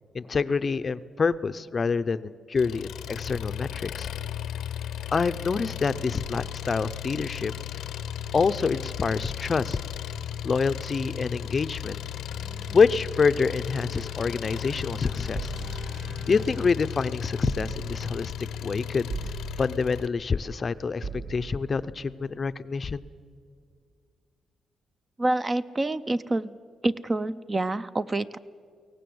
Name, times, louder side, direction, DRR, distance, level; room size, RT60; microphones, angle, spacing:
voice 1, 0.1-4.1 5.1-7.5 8.3-9.8 10.4-12.0 12.7-15.5 16.3-18.3 18.6-19.1 19.6-23.0, left 5 dB, 35° left, 13 dB, 0.5 m, -26 dB
Engine, 2.6-20.1, left 10 dB, 90° left, 0.7 m, -35 dB
sound 1, 10.3-16.7, right 1 dB, 55° right, 7.9 m, -48 dB
sound 2, 15.3-16.7 17.4-18.3 19.1-20.0 21.0-21.8, right 4 dB, 75° right, 3.8 m, -38 dB
voice 2, 25.2-26.6 26.8-28.4, right 2 dB, 20° right, 13 dB, 0.5 m, -27 dB
23.0 x 18.0 x 7.7 m, 2.1 s
cardioid pair, 135°, 0 cm